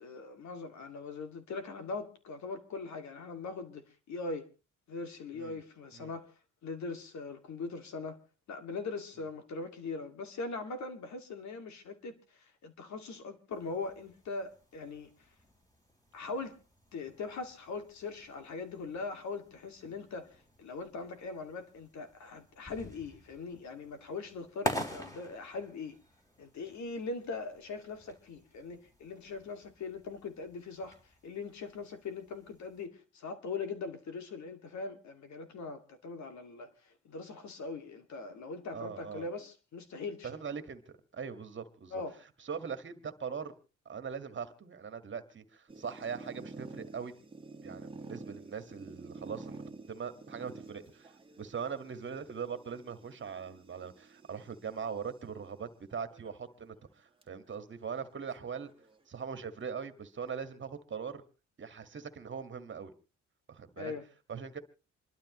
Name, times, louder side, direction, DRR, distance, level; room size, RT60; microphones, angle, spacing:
voice 1, 0.0-4.5 4.9-6.3 6.6-8.2 8.5-15.1 16.1-16.6 16.9-26.0 26.4-31.0 31.2-40.3 41.9-42.2 63.8-64.0, left 4 dB, 65° left, 2.3 m, -41 dB
sound 1, 13.5-32.9, equal, 10° left, 3.7 m, -47 dB
voice 2, 38.7-39.3 40.2-40.8 41.1-42.0 42.4-43.5 43.9-47.2 47.6-49.6 49.9-58.7 59.1-61.2 61.6-62.9 63.5-63.9 64.3-64.6, right 6 dB, 40° right, 1.7 m, -41 dB
sound 2, 45.7-55.1 55.9-56.5 56.8-56.9 57.2-57.3 58.2-59.3, right 3 dB, 15° right, 1.7 m, -50 dB
27.0 x 12.0 x 3.1 m
cardioid pair, 90°, 30 cm